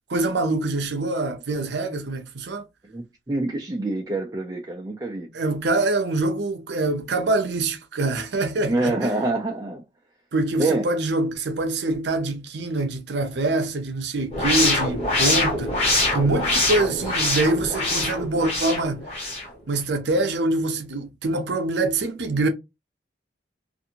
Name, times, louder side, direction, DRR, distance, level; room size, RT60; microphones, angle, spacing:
voice 1, 0.1-2.6 5.3-9.1 10.3-19.0 19.7-22.5, right 2 dB, 65° right, 0.6 m, -25 dB
voice 2, 2.9-5.3 8.7-9.8 10.6-10.8, right 2 dB, 20° right, 0.3 m, -26 dB
sound 1, 14.3-19.5, left 2 dB, 35° left, 1.2 m, -24 dB
2.5 x 2.5 x 2.7 m
head